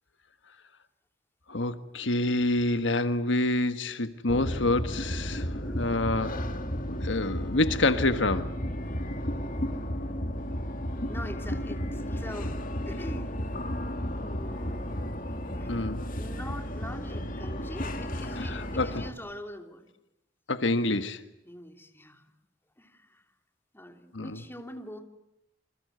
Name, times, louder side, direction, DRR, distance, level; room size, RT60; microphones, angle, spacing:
voice 1, 1.5-5.5 5.8-6.3 6.8-8.5 15.7-16.0 18.5-18.9 20.5-21.2 24.1-24.3, left 2 dB, 75° left, 1.5 m, -27 dB
sound 1, 4.3-19.1, equal, 45° left, 2.7 m, -33 dB
voice 2, 5.6-5.9 11.1-12.6 12.8-13.4 14.1-15.0 15.6-15.7 16.2-19.9 21.4-22.2 22.8-23.3 23.7-25.0, equal, 10° left, 3.1 m, -43 dB
28.5 x 25.5 x 8.1 m
head